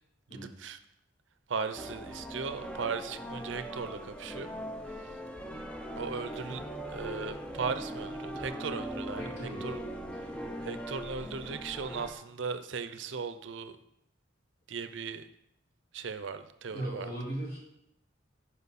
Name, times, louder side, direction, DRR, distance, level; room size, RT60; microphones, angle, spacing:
voice 1, 0.3-0.8 1.5-4.5 5.0-5.1 6.0-9.8 10.6-13.8 14.7-15.3 15.9-17.1, right 5 dB, 70° right, 10 dB, 0.5 m, -37 dB
sound 1, 1.8-12.1, right 1 dB, 5° left, 0.5 m, -40 dB
voice 2, 9.2-10.1 16.7-17.6, right 1 dB, 55° left, -6 dB, 3.4 m, -38 dB
11.0 x 4.9 x 4.1 m, 0.80 s
head